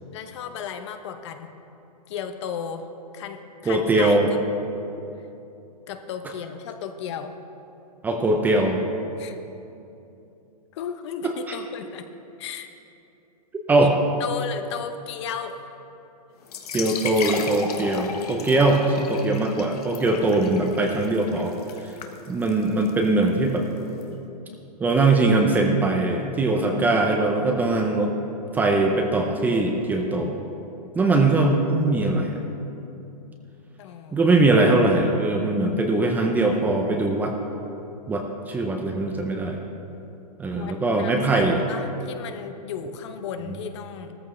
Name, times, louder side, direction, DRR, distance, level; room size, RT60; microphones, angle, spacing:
voice 1, 0.1-1.5 2.1-2.9 3.1-4.4 5.9-7.4 9.2-9.4 10.7-12.1 12.4-12.7 13.8-13.9 14.2-15.6 33.8-34.4 40.6-44.1, left 7 dB, 45° left, 8 dB, 0.9 m, -34 dB
voice 2, 3.6-4.3 8.0-8.8 11.2-11.6 13.7-13.9 16.7-21.5 21.8-21.9 22.3-23.6 24.8-28.1 28.5-30.4 30.9-32.3 34.1-37.3 38.1-39.6 40.4-41.6, right 2 dB, 10° right, 2 dB, 0.6 m, -21 dB
sound 1, 16.4-24.0, left 6 dB, 70° left, 1.4 m, -36 dB
16.0 x 14.0 x 3.2 m, 2.8 s
hypercardioid pair, 155°, 21 cm